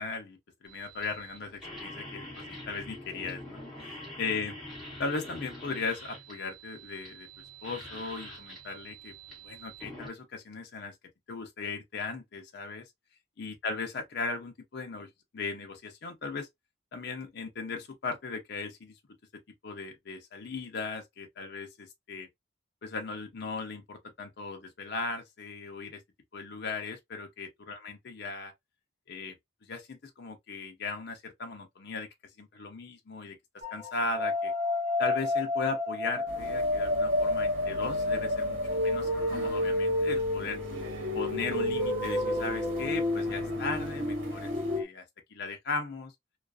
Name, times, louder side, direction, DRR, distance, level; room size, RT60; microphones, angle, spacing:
voice 1, 0.0-4.6 5.0-9.1 9.4-11.0 11.3-12.9 13.4-16.5 16.9-18.9 19.6-22.3 22.8-26.0 26.3-28.5 29.1-29.4 29.6-32.1 32.4-33.4 33.7-34.5 35.0-40.6 41.1-45.0 45.3-46.1, left 4 dB, 55° left, 0.5 m, -37 dB
sound 1, 0.6-10.1, equal, ahead, 1.2 m, -45 dB
sound 2, 33.6-44.8, left 2 dB, 35° right, 0.5 m, -30 dB
sound 3, 36.3-44.8, right 1 dB, 75° right, 1.1 m, -42 dB
2.4 x 2.3 x 2.3 m
head